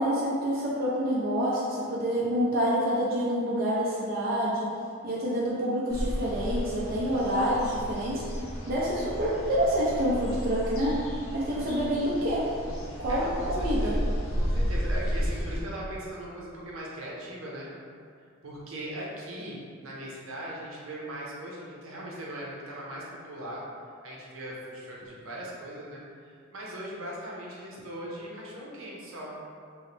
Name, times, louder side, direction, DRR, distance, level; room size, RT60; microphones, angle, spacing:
voice 1, 0.0-4.7 5.0-8.4 8.7-11.0 11.3-12.5 13.0-14.0, equal, 45° right, -7 dB, 0.5 m, -27 dB
sound 1, 5.9-15.6, equal, 80° left, 0.7 m, -32 dB
voice 2, 13.1-14.0 14.4-17.7 18.4-23.6 24.0-29.3, right 1 dB, 80° right, -5 dB, 0.8 m, -39 dB
3.0 x 2.9 x 3.2 m, 2.3 s
head